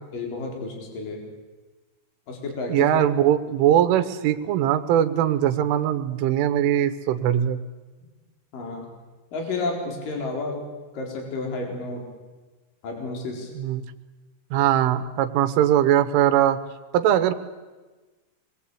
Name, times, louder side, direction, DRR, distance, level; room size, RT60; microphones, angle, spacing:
voice 1, 0.1-1.2 2.3-2.9 8.5-8.9 9.3-10.6 10.9-12.0 12.8-13.5, left 3 dB, 45° left, 1 dB, 5.5 m, -31 dB
voice 2, 2.7-7.6 13.6-13.8 14.5-16.6 16.9-17.3, right 11 dB, 85° right, 9 dB, 3.7 m, -21 dB
26.5 x 22.0 x 8.6 m, 1.3 s
omnidirectional pair, 5.6 m